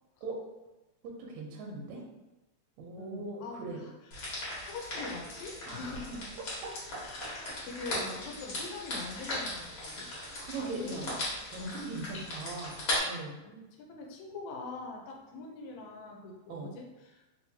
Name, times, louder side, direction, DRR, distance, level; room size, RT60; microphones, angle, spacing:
voice 1, 1.0-2.0 2.8-3.8 5.7-5.8 6.6-6.7 10.1-11.1 11.5-12.8 13.0-13.3 16.5-16.7, right 3 dB, 80° right, 0 dB, 1.9 m, -40 dB
voice 2, 3.0-4.3 4.6-6.3 7.0-11.2 11.6-11.8 13.4-17.2, left 3 dB, 75° left, 0 dB, 1.9 m, -43 dB
sound 1, 4.1-13.0, left 1 dB, 55° left, 1.7 m, -38 dB
4.4 x 2.9 x 2.7 m, 1.0 s
omnidirectional pair, 3.3 m